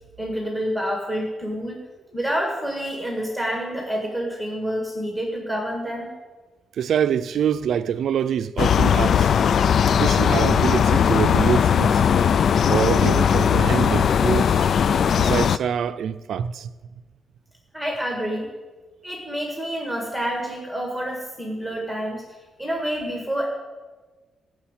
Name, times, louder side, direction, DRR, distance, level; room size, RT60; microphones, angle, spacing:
voice 1, 0.2-1.8 2.1-6.1 17.7-18.5 19.0-22.2 22.6-23.5, equal, 5° left, 1.8 m, -28 dB
voice 2, 6.8-9.3 10.0-12.0 12.7-14.7 15.2-16.7, right 8 dB, 60° right, 0.5 m, -25 dB
sound 1, 8.6-15.6, left 7 dB, 50° left, 0.3 m, -18 dB
16.0 x 6.4 x 8.9 m
wide cardioid pair, 170°, 0 cm